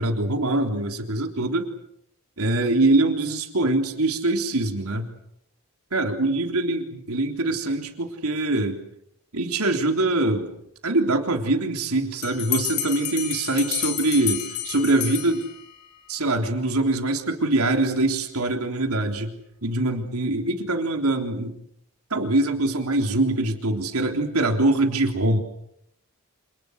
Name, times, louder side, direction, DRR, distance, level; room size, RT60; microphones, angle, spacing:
voice 1, 0.0-1.7 2.4-5.1 5.9-8.8 9.3-10.5 10.8-15.4 16.1-19.3 19.6-21.6 22.1-25.4, right 2 dB, 85° right, 4 dB, 3.6 m, -23 dB
Bell, 12.2-15.9, left 10 dB, 85° left, 4.4 m, -30 dB
28.0 x 28.0 x 6.6 m, 0.76 s
head